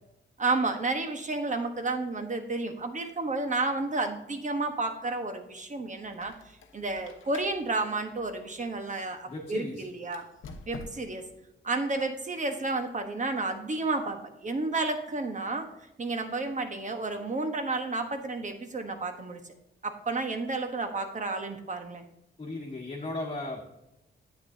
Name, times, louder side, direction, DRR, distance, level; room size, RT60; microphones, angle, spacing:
voice 1, 0.4-6.3 6.7-10.2 10.7-11.2 11.6-15.7 16.0-19.4 19.8-22.1, right 3 dB, 40° right, 6 dB, 1.1 m, -31 dB
Squeak, 6.0-9.2 10.0-11.3, left 3 dB, 90° left, 0.9 m, -49 dB
voice 2, 9.3-9.8 22.4-23.7, left 2 dB, 30° left, -4 dB, 1.5 m, -36 dB
9.5 x 8.3 x 2.7 m, 0.89 s
cardioid pair, 95°, 20 cm